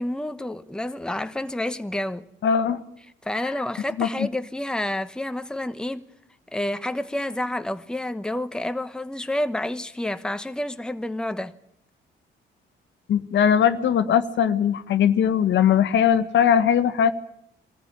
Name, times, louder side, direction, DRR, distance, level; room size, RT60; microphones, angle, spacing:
voice 1, 0.0-2.2 3.2-6.1 6.5-11.5, left 1 dB, 5° left, 1.1 m, -29 dB
voice 2, 2.4-2.8 4.0-4.3 13.1-17.1, left 8 dB, 70° left, 1.4 m, -20 dB
22.0 x 14.0 x 9.6 m
cardioid pair, 90°, 20 cm